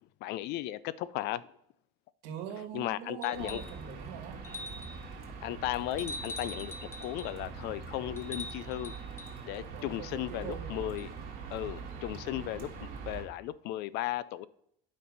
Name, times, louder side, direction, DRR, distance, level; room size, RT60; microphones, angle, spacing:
voice 1, 0.2-1.4 2.7-3.6 5.4-8.9 9.5-11.1 11.5-14.5, left 14 dB, 60° left, 18 dB, 0.4 m, -36 dB
voice 2, 2.2-4.4 9.7-10.7, right 8 dB, 85° right, 6 dB, 1.4 m, -43 dB
sound 1, 3.2-3.8 4.4-5.0 6.0-7.4 8.2-9.4 11.0-11.1, left 2 dB, 10° left, 0.6 m, -43 dB
sound 2, 3.3-13.2, right 5 dB, 50° right, 2.0 m, -43 dB
9.3 x 5.3 x 4.1 m, 0.72 s
cardioid pair, 150°, 20 cm